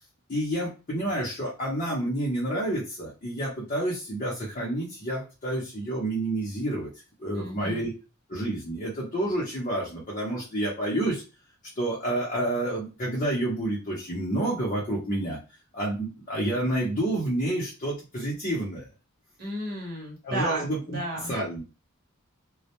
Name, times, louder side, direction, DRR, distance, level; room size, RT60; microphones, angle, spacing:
voice 1, 0.3-6.9 7.2-7.9 8.3-11.2 11.7-15.4 15.7-18.9 20.2-21.0 21.3-21.8, right 1 dB, 35° left, -5 dB, 0.7 m, -29 dB
voice 2, 7.3-7.9 19.4-21.3, right 1 dB, 50° right, -2 dB, 0.9 m, -33 dB
2.2 x 2.1 x 2.8 m, 0.31 s
head